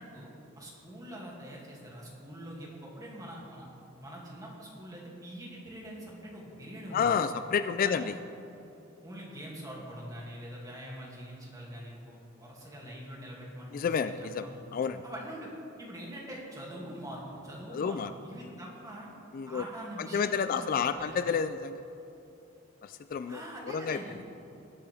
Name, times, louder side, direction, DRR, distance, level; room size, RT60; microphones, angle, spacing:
voice 1, 0.0-3.7 4.0-7.1 7.8-8.1 9.0-14.6 15.0-15.5 15.8-19.1 19.4-21.1 23.3-24.2, equal, 20° right, -4 dB, 2.4 m, -44 dB
voice 2, 6.9-8.1 13.7-14.5 14.7-15.0 17.7-18.1 19.3-19.6 20.1-21.8 22.8-23.4 23.7-24.0, left 6 dB, 45° left, 11 dB, 0.3 m, -30 dB
20.0 x 8.0 x 3.5 m, 2.9 s
head